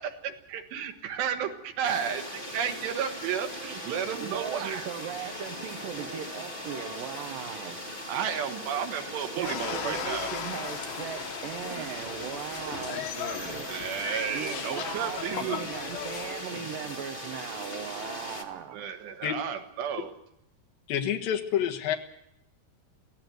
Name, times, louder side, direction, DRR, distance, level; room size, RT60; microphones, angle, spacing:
voice 1, 0.0-4.8 8.1-10.3 10.8-10.9 11.7-11.8 13.3-16.0 18.7-20.2, right 8 dB, 85° right, 5 dB, 3.8 m, -33 dB
sound 1, 1.8-18.4, left 1 dB, 45° left, 0.6 m, -39 dB
voice 2, 4.2-7.8 9.4-13.7 14.3-18.9, right 9 dB, 70° right, 6 dB, 2.5 m, -38 dB
sound 2, 9.4-16.4, left 10 dB, 90° left, 3.6 m, -38 dB
voice 3, 20.9-22.0, left 9 dB, 65° left, 3 dB, 3.0 m, -28 dB
24.0 x 16.0 x 7.9 m, 0.80 s
omnidirectional pair, 4.8 m